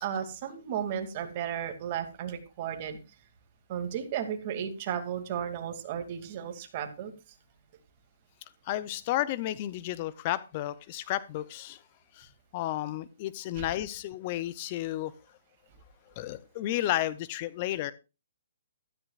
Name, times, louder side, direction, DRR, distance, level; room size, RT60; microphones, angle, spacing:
voice 1, 0.0-3.0 3.7-7.1 13.6-13.7, right 9 dB, 30° right, 6 dB, 2.4 m, -34 dB
voice 2, 8.7-11.8 12.1-15.1 16.2-17.9, left 14 dB, 30° left, 16 dB, 0.6 m, -32 dB
15.5 x 13.5 x 2.4 m, 0.29 s
hypercardioid pair, 165°, 0 cm